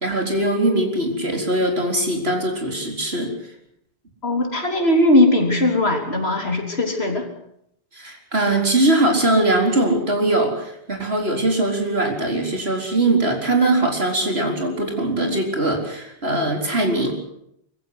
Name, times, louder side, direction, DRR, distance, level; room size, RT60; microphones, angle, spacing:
voice 1, 0.0-3.3 7.9-17.2, right 2 dB, 75° right, 2 dB, 4.5 m, -21 dB
voice 2, 4.2-7.3, left 1 dB, 75° left, 3 dB, 3.9 m, -19 dB
24.0 x 15.0 x 8.2 m, 0.75 s
omnidirectional pair, 1.1 m